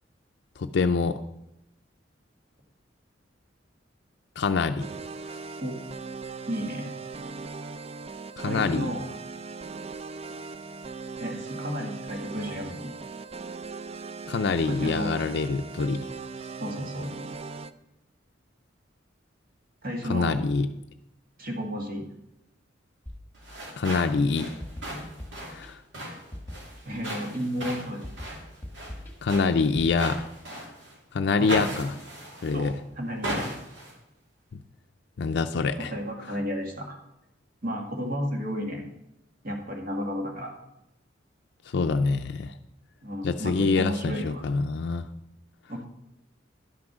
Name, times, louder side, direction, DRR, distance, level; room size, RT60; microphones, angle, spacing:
voice 1, 0.6-1.2 4.4-4.9 8.4-8.9 14.3-16.1 20.1-20.7 23.8-24.5 25.5-25.8 29.2-30.2 31.1-32.0 32.4-32.7 34.5-34.6 35.2-35.9 41.7-42.5 43.2-45.1, left 4 dB, 65° left, 7 dB, 0.4 m, -25 dB
sound 1, 4.8-17.7, right 4 dB, 35° right, 0.4 m, -39 dB
voice 2, 6.5-6.9 8.5-9.1 11.2-12.9 14.7-15.2 16.4-17.1 19.8-20.4 21.4-22.0 26.9-28.4 31.4-31.6 32.5-33.5 35.9-37.0 37.6-38.9 39.4-40.5 43.0-44.5 45.7-45.9, equal, 50° right, 2 dB, 1.9 m, -32 dB
sound 2, 23.1-24.0 24.6-26.0 26.3-27.4 28.0-29.9, left 1 dB, 10° left, 1.6 m, -43 dB
sound 3, 23.3-31.0 31.5-32.7 33.2-33.9, right 1 dB, 75° right, 2.5 m, -37 dB
11.5 x 6.0 x 6.2 m, 0.87 s
head